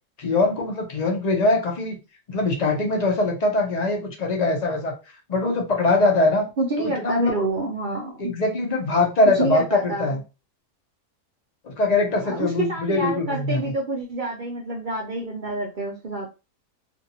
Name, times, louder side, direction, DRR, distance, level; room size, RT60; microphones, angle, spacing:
voice 1, 0.2-2.0 2.3-4.9 5.3-6.4 6.8-7.4 8.2-10.2 11.6-13.7, left 2 dB, 45° left, 1 dB, 0.5 m, -22 dB
voice 2, 6.6-8.3 9.3-10.2 12.2-16.3, right 1 dB, 85° right, -1 dB, 0.4 m, -28 dB
2.8 x 2.6 x 2.7 m, 0.29 s
omnidirectional pair, 1.6 m